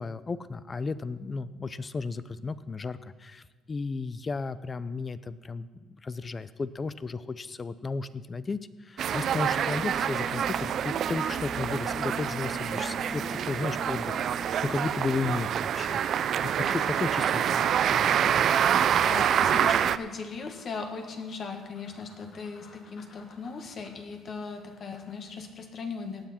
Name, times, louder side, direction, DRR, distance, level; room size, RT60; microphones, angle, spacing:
voice 1, 0.0-14.2 14.6-16.0 16.4-18.3, left 4 dB, 25° left, 15 dB, 0.5 m, -34 dB
sound 1, 9.0-20.0, right 9 dB, 55° right, 0.4 m, -26 dB
Bowed string instrument, 9.4-15.5, equal, 5° right, 1.1 m, -42 dB
sound 2, 15.5-25.2, left 3 dB, 65° left, 2.3 m, -53 dB
voice 2, 18.9-26.3, left 4 dB, 45° left, 5 dB, 1.7 m, -38 dB
16.5 x 9.7 x 4.4 m, 1.5 s
cardioid pair, 115°, 0 cm